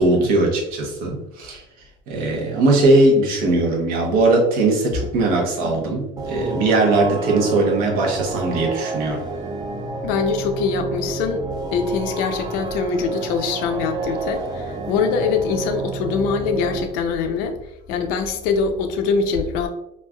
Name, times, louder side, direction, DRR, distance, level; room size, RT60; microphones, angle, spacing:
voice 1, 0.0-1.6 2.1-9.2, right 2 dB, 70° right, 0 dB, 0.9 m, -19 dB
sound 1, 6.2-16.8, right 3 dB, 25° right, 0.4 m, -29 dB
voice 2, 10.0-17.6 17.9-19.7, left 5 dB, 70° left, 6 dB, 0.5 m, -23 dB
3.1 x 2.5 x 2.2 m, 0.87 s
cardioid pair, 140°, 16 cm